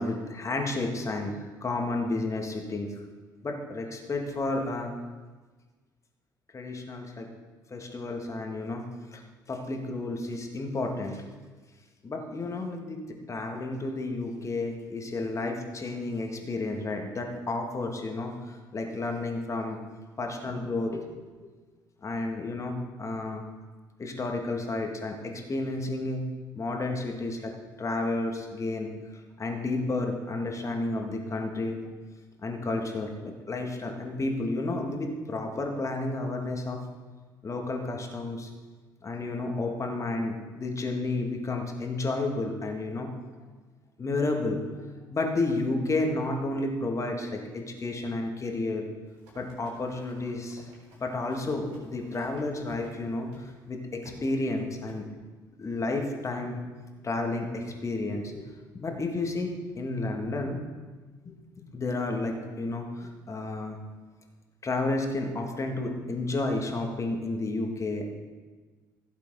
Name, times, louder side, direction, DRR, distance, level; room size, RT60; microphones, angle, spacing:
voice 1, 0.0-2.9 3.4-4.9 6.5-7.3 7.7-8.9 9.1-9.2 9.5-11.2 12.0-19.8 20.2-21.0 21.4-21.5 22.0-23.4 24.0-26.2 26.5-27.5 27.8-28.9 29.4-31.8 32.4-36.8 37.4-38.5 39.0-43.1 44.0-44.6 45.1-48.9 49.4-50.7 50.9-55.1 55.6-56.6 57.0-58.4 58.7-60.6 61.3-61.4 61.7-63.8 64.6-68.1, left 2 dB, 30° left, 3 dB, 2.0 m, -31 dB
Run, 49.1-53.0 53.3-53.5 54.0-54.3 54.9-55.0, left 1 dB, 65° right, 3.8 m, -54 dB
16.0 x 7.2 x 3.8 m, 1.4 s
figure-of-eight pair, 50°, 11 cm